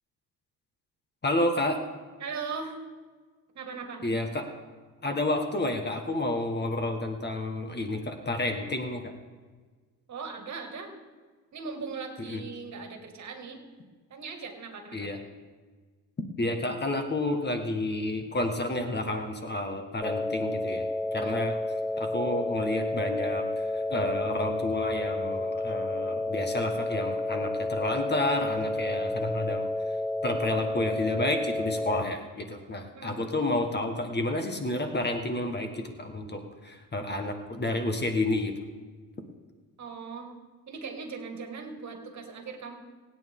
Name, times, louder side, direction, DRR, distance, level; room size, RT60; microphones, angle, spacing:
voice 1, 1.2-1.8 4.0-4.5 5.0-9.1 12.2-12.4 14.9-15.2 16.4-20.8 21.1-21.5 22.0-29.7 30.2-38.5, left 2 dB, 30° left, 5 dB, 1.6 m, -30 dB
voice 2, 2.2-2.8 3.5-4.0 10.1-10.9 11.5-13.6 14.1-15.1 21.2-21.4 32.9-33.2 39.8-40.3 40.7-42.8, right 5 dB, 50° right, 4 dB, 2.3 m, -39 dB
sound 1, 20.0-32.0, left 2 dB, 10° left, 0.6 m, -31 dB
26.0 x 9.2 x 3.8 m, 1.4 s
cardioid pair, 90°, 36 cm